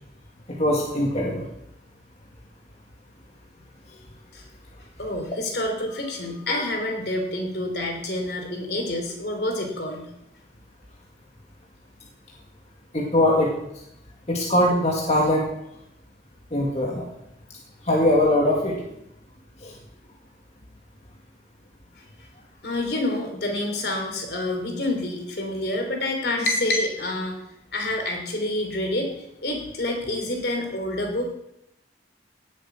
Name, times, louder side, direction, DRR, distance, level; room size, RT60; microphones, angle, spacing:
voice 1, 0.5-1.4 6.5-6.7 12.9-13.5 14.3-15.5 16.5-17.1 17.8-18.8 19.6-19.7, left 1 dB, 40° left, -2 dB, 1.9 m, -21 dB
voice 2, 5.0-10.1 22.6-27.4 27.7-29.1 29.4-31.3, left 1 dB, 60° left, 3 dB, 3.2 m, -27 dB
17.5 x 7.4 x 6.0 m, 0.81 s
head